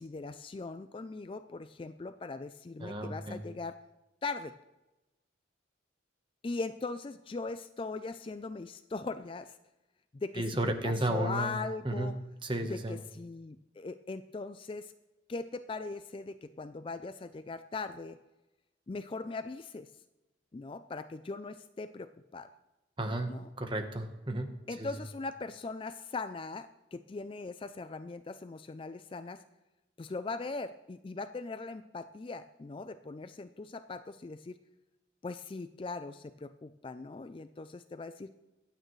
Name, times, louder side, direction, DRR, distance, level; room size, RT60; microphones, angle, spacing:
voice 1, 0.0-3.8 4.2-4.5 6.4-9.6 10.1-10.5 10.8-12.2 12.7-14.9 15.3-18.2 18.9-19.9 20.5-22.5 23.3-23.5 24.7-29.4 30.0-34.6 35.2-38.3, left 3 dB, 25° left, 11 dB, 0.3 m, -40 dB
voice 2, 2.8-3.4 10.4-11.6 11.8-12.1 12.4-13.0 23.0-23.3 23.6-24.5 24.8-24.9, right 1 dB, 25° right, 6 dB, 1.1 m, -33 dB
23.5 x 8.9 x 3.2 m, 1.0 s
head